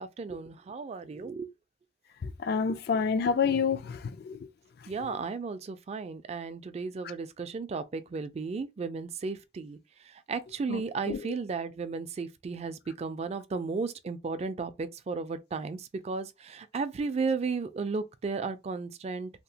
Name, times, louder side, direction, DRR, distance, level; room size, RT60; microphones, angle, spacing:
voice 1, 0.0-1.5 4.9-19.3, right 4 dB, 35° right, 0.3 m, -34 dB
voice 2, 2.2-4.4 10.7-10.8 11.1-11.2, left 5 dB, 60° left, 0.4 m, -28 dB
2.8 x 2.0 x 2.7 m
head